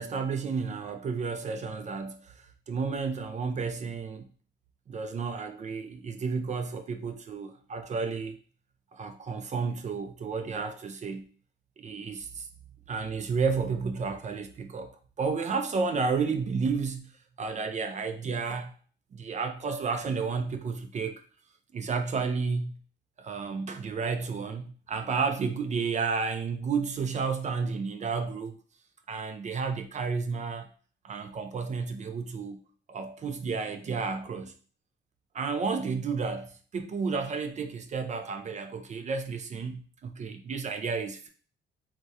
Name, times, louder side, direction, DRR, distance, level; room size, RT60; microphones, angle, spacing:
voice 1, 0.0-4.3 4.9-8.4 8.9-11.2 11.8-12.5 12.9-17.1 17.4-18.7 19.1-21.2 21.7-22.8 23.2-28.6 29.1-30.7 31.0-32.6 32.9-34.5 35.3-41.3, right 5 dB, 35° right, 0.4 m, -32 dB
3.3 x 2.1 x 2.7 m
cardioid pair, 90°, 20 cm